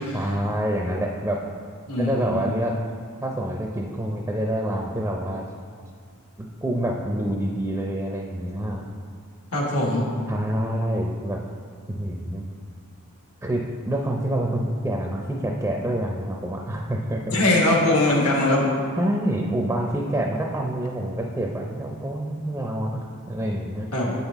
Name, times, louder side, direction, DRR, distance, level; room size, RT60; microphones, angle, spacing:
voice 1, 0.1-1.4 2.0-2.8 3.2-5.4 6.4-8.9 10.3-11.4 11.9-12.4 13.4-17.3 19.0-23.9, right 1 dB, 10° right, 0 dB, 0.4 m, -27 dB
voice 2, 1.9-2.5 9.5-10.1 17.3-18.7 23.9-24.1, left 1 dB, 80° left, -1 dB, 1.3 m, -21 dB
8.3 x 5.7 x 3.5 m, 2.1 s
head